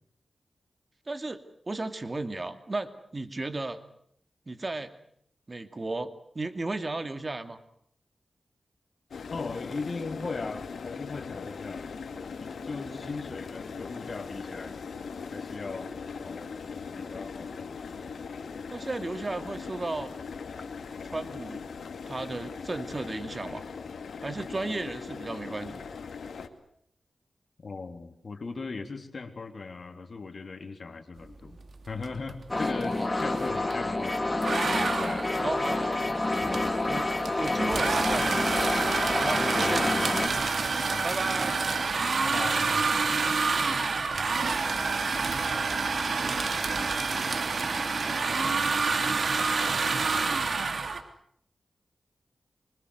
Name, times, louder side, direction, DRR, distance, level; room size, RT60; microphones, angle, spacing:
voice 1, 1.1-1.4 1.7-3.8 4.5-4.9 5.5-7.6 12.8-13.2 18.7-20.1 21.1-21.6 22.1-23.6 24.2-25.8 35.4-36.0 36.9-37.1 37.3-38.5 39.2-40.0 41.0-41.6, right 2 dB, 35° right, 9 dB, 2.6 m, -34 dB
sound 1, 9.1-26.5, left 5 dB, 85° left, 2.4 m, -40 dB
voice 2, 9.3-11.9 12.2-14.8 15.3-15.9 16.2-16.7 17.0-18.1 27.6-31.6 31.9-34.3 34.8-35.5 37.5-37.7 39.5-40.1 40.9-41.1 42.2-43.0, left 4 dB, 60° left, 7 dB, 3.6 m, -38 dB
sound 2, 32.0-32.3 32.6-33.8 34.4-51.0, right 4 dB, 65° right, 3.3 m, -28 dB
sound 3, 32.5-40.3, left 2 dB, 25° left, 4.3 m, -28 dB
26.0 x 25.0 x 6.6 m, 0.69 s
cardioid pair, 65°, 0 cm